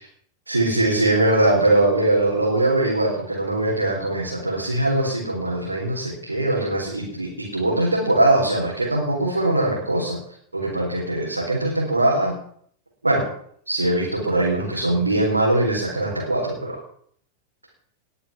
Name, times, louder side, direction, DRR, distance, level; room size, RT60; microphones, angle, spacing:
voice 1, 0.5-10.2 10.5-12.3 13.0-13.3 13.7-16.8, right 2 dB, 80° right, -5 dB, 4.3 m, -21 dB
20.0 x 7.0 x 7.1 m, 0.62 s
figure-of-eight pair, 90°, 0 cm